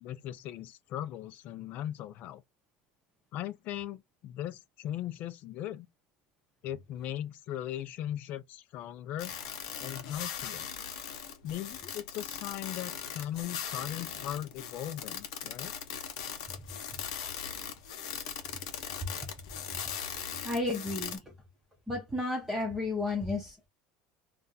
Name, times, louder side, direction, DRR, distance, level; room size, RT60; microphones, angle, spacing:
voice 1, 0.0-2.4 3.3-5.9 6.6-9.3 9.8-10.7 11.4-15.7, left 12 dB, 50° left, 0.4 m, -38 dB
sound 1, 9.2-21.2, left 8 dB, 85° left, 0.7 m, -39 dB
voice 2, 20.4-21.2 21.9-23.7, left 2 dB, 5° right, 0.7 m, -32 dB
2.5 x 2.2 x 3.9 m
supercardioid pair, 135°, 4 cm